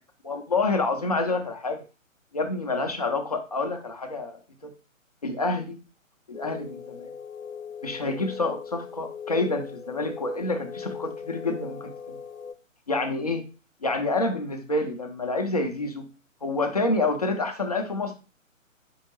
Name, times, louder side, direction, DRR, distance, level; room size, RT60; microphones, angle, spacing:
voice 1, 0.2-1.8 2.3-4.4 5.2-5.8 6.3-7.1 7.8-12.2 12.9-13.5 13.8-16.1 16.4-18.1, left 2 dB, 30° left, 5 dB, 0.5 m, -28 dB
sound 1, 6.3-12.5, left 6 dB, 80° left, 0.7 m, -39 dB
4.5 x 3.4 x 3.0 m, 0.34 s
figure-of-eight pair, 135°, 40 cm